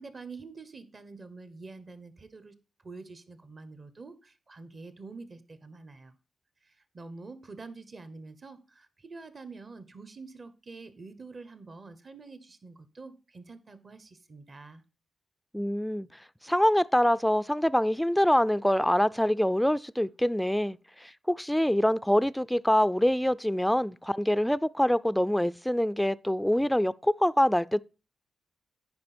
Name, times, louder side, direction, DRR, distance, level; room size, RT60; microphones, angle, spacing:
voice 1, 0.0-2.6 2.8-6.1 6.6-14.8, right 3 dB, 45° right, 1.0 m, -46 dB
voice 2, 15.5-16.1 16.4-27.8, equal, 5° left, 0.3 m, -25 dB
9.6 x 5.0 x 4.3 m
cardioid pair, 70°, 0 cm